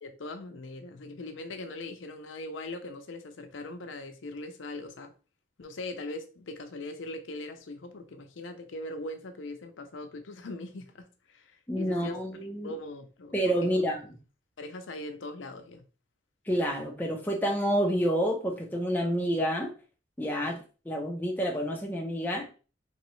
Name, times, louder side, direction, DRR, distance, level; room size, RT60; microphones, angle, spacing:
voice 1, 0.0-5.1 5.6-12.2 12.6-13.7 14.6-15.8, left 2 dB, 90° left, 0.6 m, -40 dB
voice 2, 11.7-12.7 13.3-14.0 16.5-19.7 20.2-22.5, equal, 10° left, 0.6 m, -29 dB
3.1 x 2.9 x 3.1 m
head